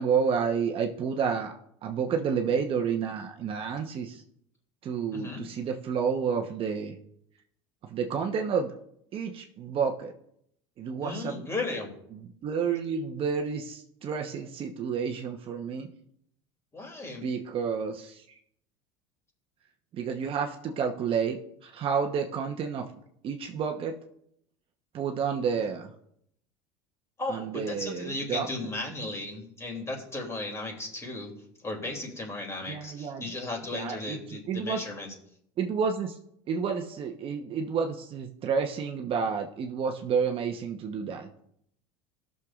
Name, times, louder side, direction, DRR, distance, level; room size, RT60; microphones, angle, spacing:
voice 1, 0.0-1.5 1.8-4.2 4.8-7.0 7.8-8.7 9.1-10.1 10.8-11.4 12.1-15.9 17.2-18.4 19.9-22.8 23.2-24.0 24.9-25.9 27.3-28.5 32.7-33.2 33.7-34.8 35.6-36.2 36.5-41.3, right 6 dB, 40° right, 3 dB, 1.0 m, -30 dB
voice 2, 5.1-5.4 11.0-11.9 16.7-17.2 27.2-31.3 31.6-35.1, left 2 dB, 20° left, 1 dB, 2.9 m, -35 dB
16.5 x 6.6 x 2.5 m, 0.72 s
supercardioid pair, 105°, 14 cm